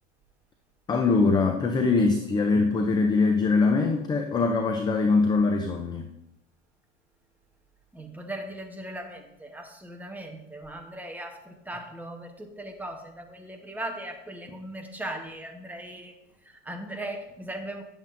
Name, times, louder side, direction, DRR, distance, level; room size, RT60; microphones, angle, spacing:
voice 1, 0.9-6.1, left 4 dB, 10° left, 4 dB, 0.3 m, -23 dB
voice 2, 7.9-16.1 16.6-17.8, right 1 dB, 5° right, 3 dB, 0.8 m, -38 dB
10.5 x 7.4 x 2.5 m, 0.85 s
supercardioid pair, 130°, 39 cm